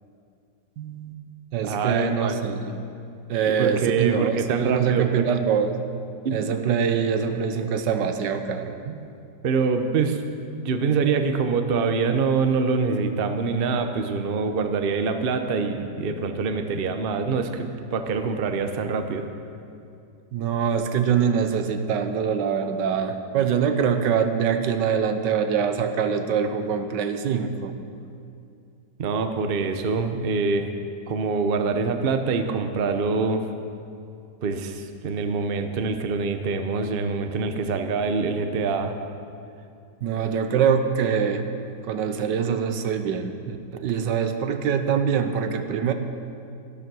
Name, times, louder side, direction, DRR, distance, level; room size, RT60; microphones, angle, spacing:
voice 1, 0.8-1.2 1.5-2.8 3.3-5.8 6.3-8.8 20.3-27.7 40.0-41.5 41.8-45.9, right 7 dB, 85° right, 8 dB, 1.5 m, -24 dB
voice 2, 1.6-2.4 3.6-5.3 6.2-6.4 8.9-9.0 9.4-10.2 10.6-19.2 29.0-30.7 31.1-33.4 34.4-39.0, right 4 dB, 45° right, 7 dB, 0.8 m, -25 dB
12.5 x 12.0 x 6.2 m, 2.5 s
omnidirectional pair, 1.9 m